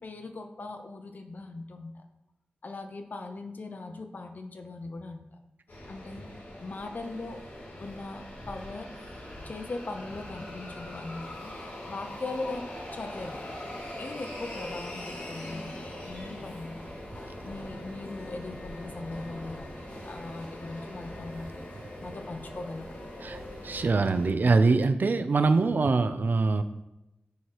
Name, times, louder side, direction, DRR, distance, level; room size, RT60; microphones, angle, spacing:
voice 1, 0.0-2.0 2.6-5.3 5.9-7.4 7.8-8.9 9.4-11.5 11.9-13.6 14.0-16.9 17.4-21.6 22.0-23.0, left 3 dB, 60° left, 6 dB, 0.7 m, -40 dB
sound 1, 5.7-24.3, left 1 dB, 80° left, 2.1 m, -41 dB
voice 2, 23.2-26.6, right 3 dB, 60° right, 10 dB, 0.4 m, -24 dB
9.3 x 4.8 x 3.0 m, 0.92 s
wide cardioid pair, 105°, 3 cm